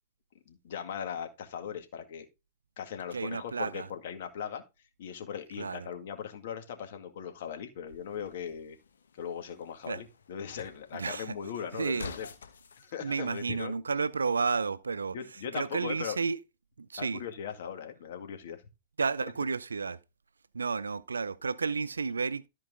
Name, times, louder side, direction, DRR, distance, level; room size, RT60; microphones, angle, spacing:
voice 1, 0.5-2.3 2.8-4.6 5.0-8.8 9.2-12.3 12.8-13.8 15.1-16.2 17.0-18.6, left 8 dB, 60° left, 2.0 m, -39 dB
voice 2, 3.1-3.9 5.6-5.9 9.9-10.0 10.9-11.3 11.7-12.2 13.0-15.2 15.5-16.4 16.8-17.2 19.0-20.0 20.5-22.5, right 4 dB, 90° right, 0.5 m, -31 dB
sound 1, 7.9-12.9, left 5 dB, 80° left, 1.1 m, -49 dB
14.0 x 4.6 x 3.7 m
hypercardioid pair, 110°, 0 cm